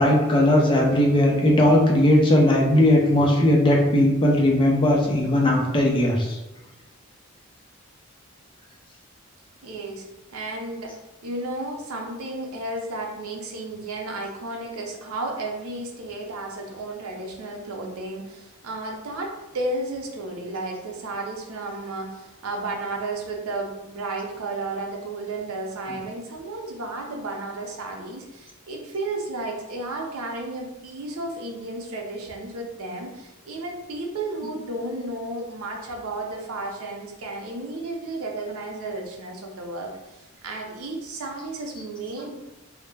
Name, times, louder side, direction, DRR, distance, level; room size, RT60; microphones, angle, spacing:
voice 1, 0.0-6.4, left 1 dB, 25° left, -1 dB, 0.4 m, -18 dB
voice 2, 9.6-10.0 10.3-10.9 11.2-42.4, right 2 dB, 85° right, 1 dB, 0.5 m, -33 dB
2.2 x 2.0 x 3.2 m, 1.0 s
head